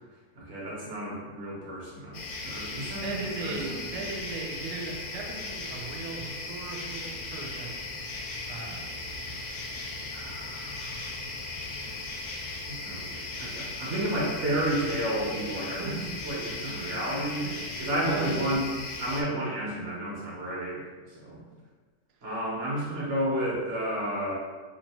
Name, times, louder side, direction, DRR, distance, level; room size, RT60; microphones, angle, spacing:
voice 1, 0.3-3.9 10.1-11.4 11.7-12.0 12.5-17.5 17.8-18.7 19.0-21.4 22.2-24.3, right 1 dB, 50° right, -6 dB, 1.3 m, -32 dB
sound 1, 2.1-19.2, left 3 dB, 75° left, 1.1 m, -37 dB
voice 2, 2.8-7.8 8.5-8.9 15.7-16.0 17.0-17.6 18.0-18.5 19.3-19.6, right 3 dB, 85° right, 1 dB, 1.1 m, -38 dB
3.4 x 2.8 x 2.8 m, 1.4 s
omnidirectional pair, 1.7 m